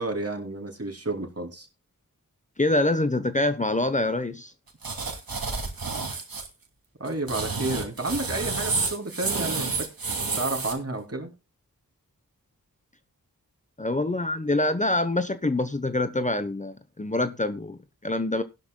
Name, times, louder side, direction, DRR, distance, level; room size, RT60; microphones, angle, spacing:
voice 1, 0.0-1.7 7.0-9.9 10.4-11.3, right 2 dB, 45° right, 2.8 m, -31 dB
voice 2, 2.6-4.5 13.8-18.4, left 2 dB, 20° left, 0.9 m, -25 dB
sound 1, 4.8-6.5 7.1-10.7, right 4 dB, 80° right, 2.5 m, -30 dB
16.0 x 11.5 x 2.2 m
cardioid pair, 40°, 35 cm